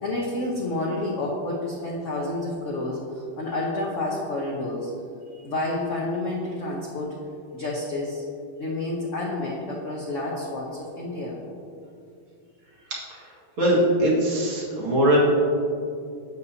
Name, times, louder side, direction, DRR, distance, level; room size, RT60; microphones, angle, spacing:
voice 1, 0.0-4.9 5.4-7.1 7.5-8.2 8.6-11.4, left 2 dB, 50° left, -3 dB, 0.9 m, -29 dB
voice 2, 13.1-15.2, right 1 dB, 85° right, -5 dB, 2.6 m, -22 dB
11.0 x 7.0 x 2.8 m, 2.5 s
omnidirectional pair, 2.2 m